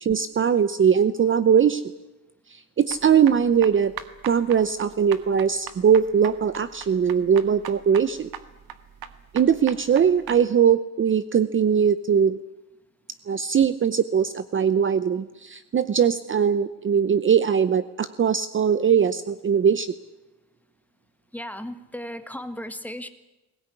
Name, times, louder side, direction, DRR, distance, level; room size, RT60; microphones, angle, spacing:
voice 1, 0.0-1.8 2.5-3.9 4.3-8.3 9.3-12.4 13.3-19.9, right 7 dB, 30° right, 14 dB, 0.7 m, -21 dB
sound 1, 2.9-10.4, right 10 dB, 70° right, 1.7 m, -40 dB
voice 2, 21.3-23.1, equal, 5° left, 9 dB, 1.5 m, -35 dB
21.0 x 18.5 x 9.8 m, 1.0 s
cardioid pair, 135°, 38 cm